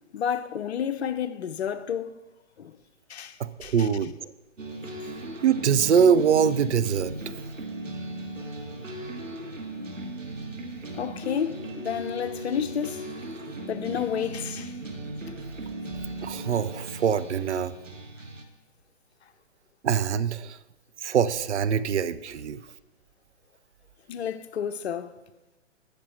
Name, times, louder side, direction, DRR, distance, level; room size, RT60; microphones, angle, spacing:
voice 1, 0.1-2.1 2.6-2.8 3.1-3.9 11.0-13.1 13.7-14.7 24.1-25.1, left 8 dB, 55° left, 0.9 m, -31 dB
voice 2, 3.4-4.1 5.4-7.1 16.2-17.7 19.8-20.6 21.0-22.6, right 7 dB, 65° right, 0.7 m, -23 dB
sound 1, 4.6-18.4, right 1 dB, 90° right, 1.6 m, -37 dB
13.0 x 8.7 x 4.3 m
figure-of-eight pair, 130°, 37 cm